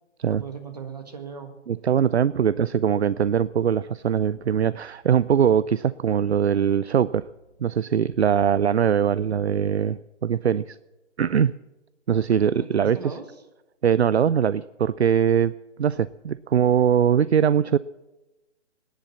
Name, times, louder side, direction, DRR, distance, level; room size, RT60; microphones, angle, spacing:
voice 1, 0.3-1.5 2.5-2.9 12.5-13.2, right 4 dB, 35° right, 6 dB, 1.7 m, -38 dB
voice 2, 1.7-7.3 7.6-10.8 11.2-11.5 12.1-13.1 13.8-17.8, right 8 dB, 65° right, 18 dB, 0.4 m, -22 dB
sound 1, 1.9-9.2, right 1 dB, 20° right, 1.3 m, -62 dB
18.5 x 10.5 x 7.1 m, 1.1 s
hypercardioid pair, 175°, 36 cm